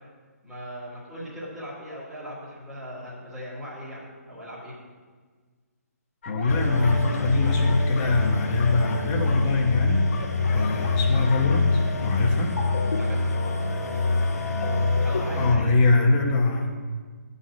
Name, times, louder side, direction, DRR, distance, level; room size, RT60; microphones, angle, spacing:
voice 1, 0.4-4.0 4.3-4.7 10.4-10.6 12.9-13.5 15.0-15.8, equal, ahead, -10 dB, 2.8 m, -38 dB
sound 1, 6.2-7.3 7.6-11.6, left 5 dB, 50° left, 1.0 m, -40 dB
voice 2, 6.3-10.1 10.5-12.6 15.3-16.7, left 3 dB, 25° left, 0 dB, 1.4 m, -23 dB
sound 2, 6.5-15.5, left 3 dB, 75° left, 1.7 m, -25 dB
12.5 x 4.1 x 7.4 m, 1.5 s
hypercardioid pair, 150°, 9 cm